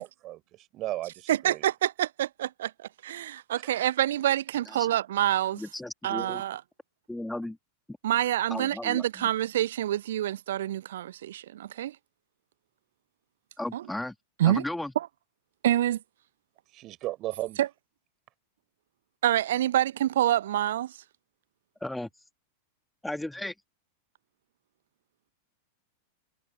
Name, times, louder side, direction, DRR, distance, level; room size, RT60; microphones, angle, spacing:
voice 1, 0.0-1.6 3.6-3.7 16.7-17.6, right 16 dB, 35° right, 5.0 m, -36 dB
voice 2, 1.3-2.7 3.0-5.6 6.0-6.6 8.0-12.0 13.7-13.8 14.4-14.6 15.0-15.1 15.6-16.0 17.6-17.7 19.2-20.9, right 12 dB, 60° right, 0.8 m, -26 dB
voice 3, 5.5-6.4 7.1-7.6 7.9-8.0 8.5-9.3 13.6-14.2 14.4-14.9 21.8-22.1 23.0-23.5, left 1 dB, 5° left, 2.3 m, -35 dB
figure-of-eight pair, 90°, 0 cm